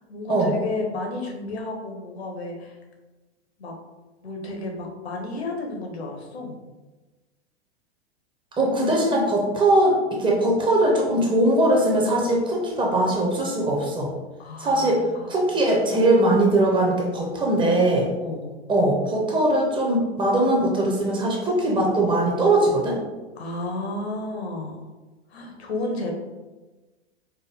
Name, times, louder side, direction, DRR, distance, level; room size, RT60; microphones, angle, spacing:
voice 1, 0.1-2.8 3.6-3.7 4.2-6.6 14.4-15.7 18.2-18.5 23.4-24.8 25.3-26.1, left 2 dB, 70° left, 1 dB, 1.0 m, -32 dB
voice 2, 8.6-14.1 14.6-15.0 15.3-18.1 18.7-23.0, right 1 dB, 15° right, -1 dB, 0.6 m, -21 dB
4.5 x 2.1 x 3.3 m, 1.2 s
figure-of-eight pair, 100°, 33 cm